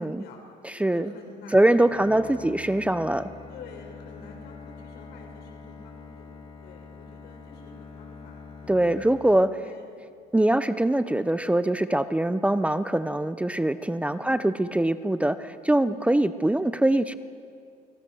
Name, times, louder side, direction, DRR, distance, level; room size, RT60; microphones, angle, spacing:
voice 1, 0.0-2.5 3.5-9.9 14.1-14.4 15.7-16.0, left 4 dB, 80° left, 2 dB, 5.9 m, -48 dB
voice 2, 0.6-1.1 1.5-3.3 8.7-9.6 10.3-17.2, right 1 dB, 5° right, 12 dB, 0.7 m, -23 dB
Bowed string instrument, 1.7-10.0, left 5 dB, 35° left, 3.3 m, -45 dB
29.0 x 21.0 x 6.4 m, 2.3 s
cardioid pair, 110°, 17 cm